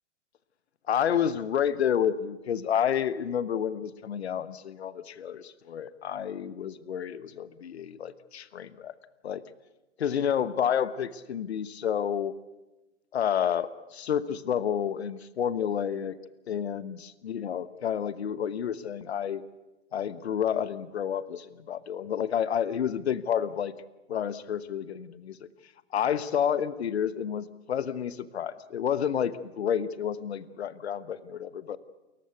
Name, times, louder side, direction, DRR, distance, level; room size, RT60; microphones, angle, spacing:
voice 1, 0.9-8.9 9.2-9.4 10.0-12.3 13.1-16.2 16.5-17.0 17.2-19.4 19.9-23.7 24.1-25.4 25.9-31.8, left 8 dB, 60° left, 17 dB, 1.1 m, -30 dB
29.0 x 15.0 x 8.2 m, 1.0 s
figure-of-eight pair, 110°, 36 cm